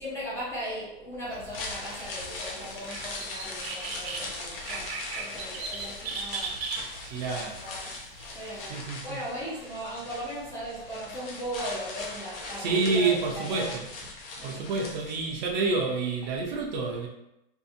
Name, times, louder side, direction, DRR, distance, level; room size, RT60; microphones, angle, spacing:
voice 1, 0.0-6.6 7.3-7.4 7.6-7.9 8.3-8.7 9.0-13.7 14.4-14.8, equal, 10° left, -9 dB, 0.4 m, -38 dB
sound 1, 1.2-8.7, right 4 dB, 85° right, 0.7 m, -39 dB
sound 2, 1.3-15.5 15.8-15.9, left 3 dB, 65° left, 0.8 m, -40 dB
voice 2, 7.0-7.6 8.7-9.2 12.6-13.9 14.4-17.1, right 4 dB, 45° right, 1 dB, 0.5 m, -28 dB
2.7 x 2.5 x 2.5 m, 0.85 s
supercardioid pair, 155°, 31 cm